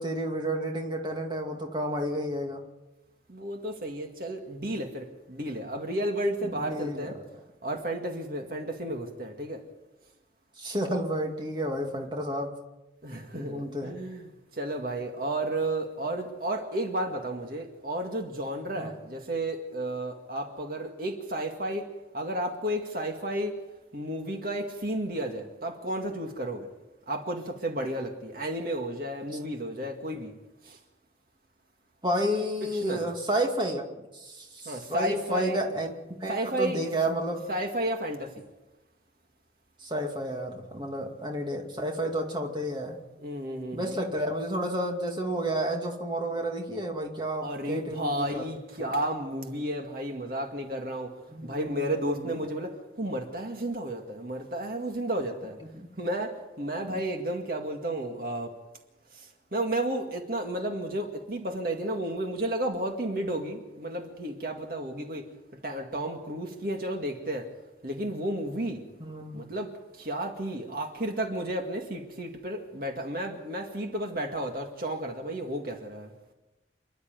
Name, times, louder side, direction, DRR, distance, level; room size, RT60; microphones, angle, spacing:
voice 1, 0.0-2.6 6.4-7.1 10.6-12.5 13.3-14.0 18.8-18.9 32.0-37.4 39.8-43.0 43.7-48.4 48.8-48.9 51.3-52.3 55.6-55.9 56.9-57.0 69.0-69.4, right 1 dB, 25° right, 1 dB, 2.3 m, -31 dB
voice 2, 3.3-7.2 7.6-9.6 13.0-21.9 22.1-23.6 23.9-26.7 27.1-30.3 30.6-30.8 32.6-33.1 34.7-35.9 36.3-36.8 37.5-38.3 43.2-44.0 47.4-51.1 51.4-55.6 56.0-58.5 59.1-65.3 65.6-67.5 67.8-68.8 69.3-69.7 70.0-76.1, right 1 dB, 50° right, 3 dB, 2.1 m, -32 dB
28.5 x 11.5 x 9.4 m, 1.1 s
head